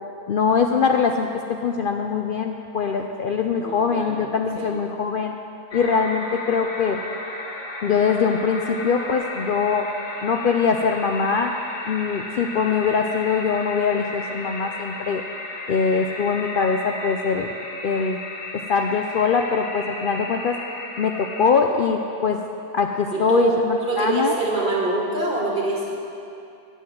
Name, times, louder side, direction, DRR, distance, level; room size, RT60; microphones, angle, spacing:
voice 1, 0.3-1.3 1.6-5.3 5.7-7.0 7.8-9.9 10.2-11.5 11.9-15.2 15.7-17.5 17.8-18.2 18.5-20.5 21.0-22.4 22.7-24.3, left 5 dB, 90° left, 4 dB, 0.4 m, -22 dB
voice 2, 3.6-4.2 4.6-4.7 23.1-25.9, right 3 dB, 35° right, -4 dB, 2.2 m, -24 dB
sound 1, 5.7-21.5, left 2 dB, 35° left, 1.0 m, -34 dB
8.2 x 8.0 x 8.9 m, 2.6 s
omnidirectional pair, 1.6 m